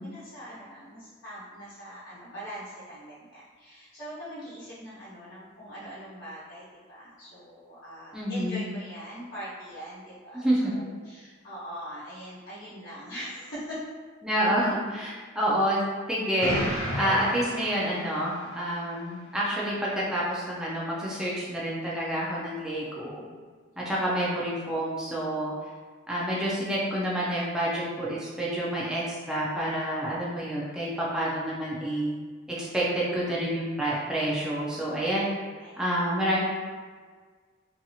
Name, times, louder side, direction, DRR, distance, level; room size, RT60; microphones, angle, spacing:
voice 1, 0.0-13.8 35.6-35.8, equal, 70° left, -12 dB, 0.9 m, -42 dB
voice 2, 8.1-8.7 10.3-10.7 14.2-15.8 16.1-23.2 23.8-25.5 26.1-32.1 32.6-35.3 35.8-36.4, right 1 dB, 5° right, -7 dB, 0.4 m, -28 dB
Explosion, 16.4-18.6, equal, 40° left, 1.4 m, -32 dB
2.8 x 2.7 x 2.3 m, 1.5 s
head